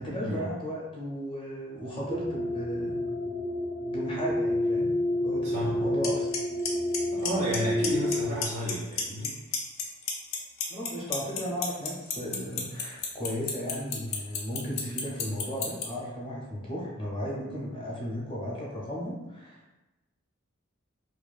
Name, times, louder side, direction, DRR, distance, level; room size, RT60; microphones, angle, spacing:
voice 1, 0.0-3.3 3.8-6.3 10.7-19.8, equal, 25° left, -5 dB, 0.6 m, -35 dB
sound 1, 2.1-8.4, left 1 dB, 90° right, 0.7 m, -29 dB
voice 2, 5.4-5.8 7.1-9.4, equal, 40° right, -5 dB, 0.4 m, -31 dB
Clock, 6.0-6.1 6.3-6.7 6.9-7.6 7.8-8.1 8.4-9.3 9.5-15.8, left 8 dB, 75° left, 0.5 m, -30 dB
2.6 x 2.2 x 2.4 m, 1.0 s
head